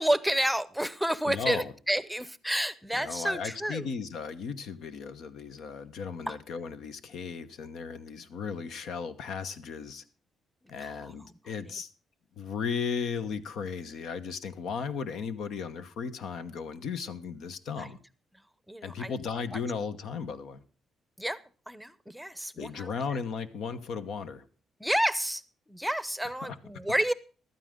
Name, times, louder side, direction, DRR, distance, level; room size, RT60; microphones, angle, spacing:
voice 1, 0.0-3.9 6.3-6.4 10.8-11.1 17.8-17.9 18.7-19.1 19.5-19.6 21.2-21.4 21.7-23.2 24.8-25.4 25.7-27.1, right 1 dB, ahead, 17 dB, 0.8 m, -30 dB
voice 2, 1.3-1.7 3.0-10.0 10.7-11.9 12.4-18.0 18.8-20.6 22.6-24.4 26.4-26.6, left 6 dB, 75° left, 11 dB, 1.1 m, -36 dB
14.5 x 12.5 x 3.7 m, 0.38 s
cardioid pair, 90°, 0 cm